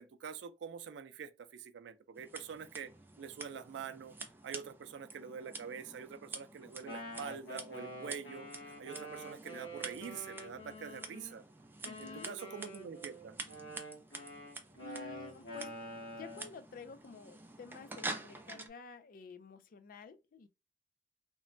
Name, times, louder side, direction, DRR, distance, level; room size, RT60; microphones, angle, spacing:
voice 1, 0.0-2.9 3.2-4.2 4.4-8.5 8.8-11.4 12.0-13.4, right 7 dB, 90° right, 0.4 m, -45 dB
Scissors, 2.2-18.7, right 3 dB, 10° right, 0.4 m, -48 dB
Wind instrument woodwind instrument, 6.6-11.4 11.8-16.5, equal, 90° left, 1.0 m, -47 dB
voice 2, 11.8-12.3 14.8-15.7 16.2-20.5, left 4 dB, 50° left, 0.4 m, -50 dB
3.0 x 2.1 x 2.6 m
head